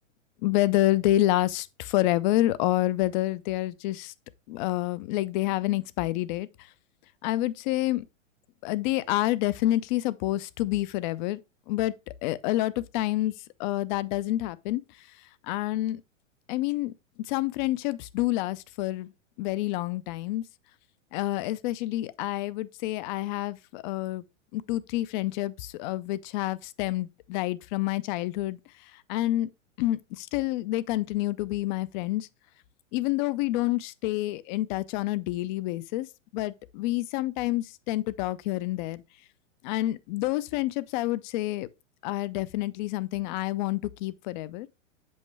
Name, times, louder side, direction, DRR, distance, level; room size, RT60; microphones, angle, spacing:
voice 1, 0.4-4.1 4.5-6.5 7.2-8.0 8.6-11.4 11.7-12.0 12.2-13.3 13.6-14.8 15.4-16.0 16.5-16.9 17.3-19.1 19.4-20.4 21.1-24.2 24.5-28.6 29.1-29.5 29.8-32.3 32.9-36.1 36.3-39.0 39.6-41.7 42.0-44.7, left 16 dB, 40° left, 0.5 m, -28 dB
7.2 x 5.5 x 3.2 m
hypercardioid pair, 115°, 38 cm